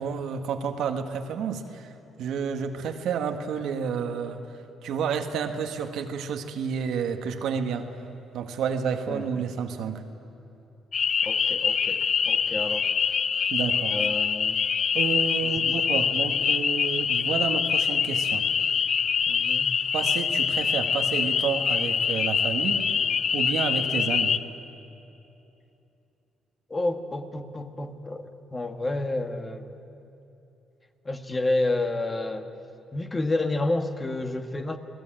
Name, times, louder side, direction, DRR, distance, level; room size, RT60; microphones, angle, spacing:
voice 1, 0.0-1.9 2.2-4.4 4.8-7.9 8.3-10.0 13.5-14.1 14.9-18.5 19.9-22.9 23.3-24.4, right 6 dB, 80° right, 6 dB, 1.7 m, -30 dB
voice 2, 9.1-9.4 11.2-12.9 13.9-14.6 15.4-15.8 19.3-19.7 26.7-29.7 31.1-32.5 32.9-34.8, left 2 dB, 25° left, 7 dB, 1.8 m, -30 dB
sound 1, 10.9-24.4, left 7 dB, 55° left, 0.7 m, -25 dB
29.0 x 19.5 x 9.0 m, 2.9 s
cardioid pair, 90°, 0 cm